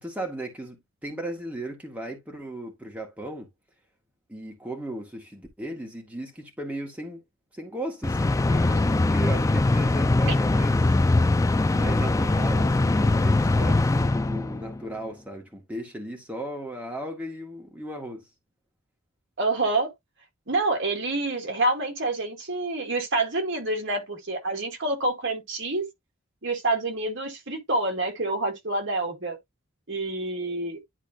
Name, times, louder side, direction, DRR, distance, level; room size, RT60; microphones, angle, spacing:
voice 1, 0.0-3.5 4.3-7.2 7.5-10.8 11.7-18.2, right 1 dB, 5° right, 1.9 m, -36 dB
sound 1, 8.0-14.8, left 2 dB, 15° left, 0.3 m, -22 dB
voice 2, 19.4-19.9 20.5-25.9 26.4-29.4 29.9-30.8, right 2 dB, 60° right, 2.0 m, -27 dB
11.0 x 4.1 x 2.7 m
head